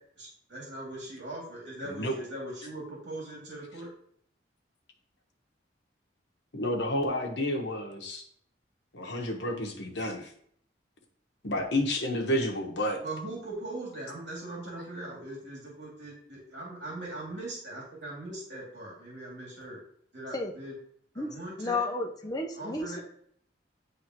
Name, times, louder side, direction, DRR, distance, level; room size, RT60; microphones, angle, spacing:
voice 1, 0.2-3.9 13.0-19.8 20.1-20.7 21.1-21.8 22.6-23.0, right 2 dB, 70° right, -4 dB, 2.5 m, -40 dB
voice 2, 1.8-2.1 6.5-8.2 8.9-10.3 11.4-13.0, left 1 dB, 75° left, 3 dB, 1.2 m, -30 dB
voice 3, 21.6-23.0, left 2 dB, 20° left, 1 dB, 0.8 m, -32 dB
10.0 x 3.5 x 3.0 m, 0.64 s
head